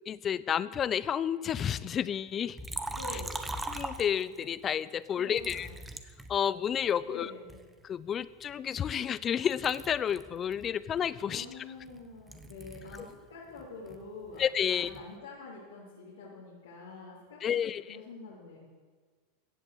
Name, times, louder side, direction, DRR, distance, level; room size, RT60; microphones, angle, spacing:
voice 1, 0.1-2.6 3.1-3.2 3.7-5.7 6.3-7.3 7.8-11.7 14.4-14.9 17.4-18.0, left 8 dB, 30° left, 17 dB, 0.6 m, -31 dB
Liquid, 2.6-4.5 5.4-6.9 7.5-9.2 9.5-13.2 13.5-15.1, right 2 dB, 10° right, 1.3 m, -41 dB
voice 2, 2.9-3.5 5.2-5.7 7.1-7.6 11.2-14.4 14.7-18.6, left 3 dB, 90° left, -7 dB, 3.5 m, -46 dB
15.5 x 7.9 x 8.2 m, 1.5 s
hypercardioid pair, 105°, 0 cm